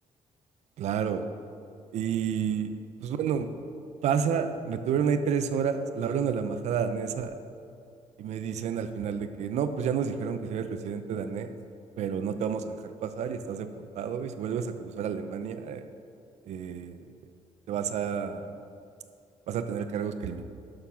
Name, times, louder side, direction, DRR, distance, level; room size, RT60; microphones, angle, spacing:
voice 1, 0.8-1.3 1.9-2.7 3.0-3.5 4.0-7.4 8.2-11.5 12.0-15.8 16.5-17.0 17.7-18.5 19.5-20.4, right 7 dB, 70° right, 9 dB, 0.7 m, -30 dB
11.5 x 6.6 x 5.9 m, 2.4 s
cardioid pair, 145°, 12 cm